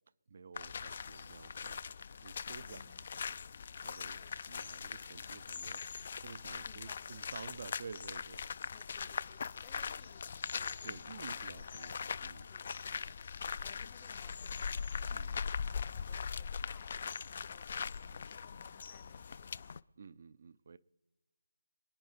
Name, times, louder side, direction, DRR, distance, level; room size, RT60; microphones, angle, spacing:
voice 1, 0.3-1.8 2.2-2.9 3.8-5.8 6.2-8.4 10.8-12.5 15.1-15.4 20.0-20.8, right 5 dB, 45° right, 0.5 m, -51 dB
sound 1, 0.6-19.8, left 6 dB, 45° left, 0.4 m, -41 dB
voice 2, 2.6-3.4 4.2-4.5 6.6-7.2 8.7-19.7, left 9 dB, 15° left, 0.7 m, -64 dB
26.5 x 9.2 x 4.2 m
figure-of-eight pair, 160°, 0 cm